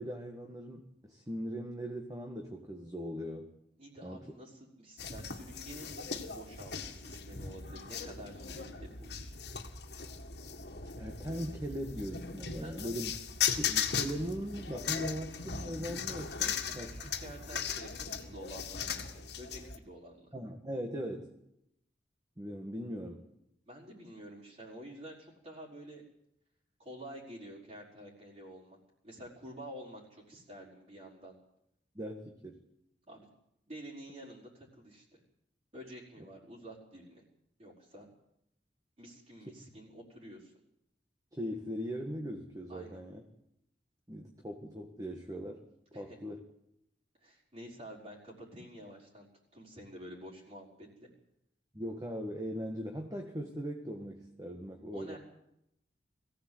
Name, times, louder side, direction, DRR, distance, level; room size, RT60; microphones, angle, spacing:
voice 1, 0.0-3.5 4.0-4.3 10.9-13.1 13.6-16.9 20.3-21.3 22.4-23.2 31.9-32.6 41.3-43.2 44.1-45.7 45.9-46.4 51.7-55.2, equal, 20° right, 2 dB, 1.7 m, -39 dB
voice 2, 3.8-9.3 12.6-12.9 16.4-20.3 23.7-26.0 26.8-28.8 29.0-31.3 33.1-33.3 33.7-35.2 35.7-37.2 37.6-38.1 39.0-40.5 42.7-43.0 45.9-46.2 47.2-49.3 49.5-51.1 54.9-55.2, right 1 dB, 35° right, -6 dB, 5.0 m, -49 dB
sound 1, 5.0-19.8, left 7 dB, 65° left, 1.9 m, -38 dB
22.0 x 16.0 x 8.0 m, 0.80 s
head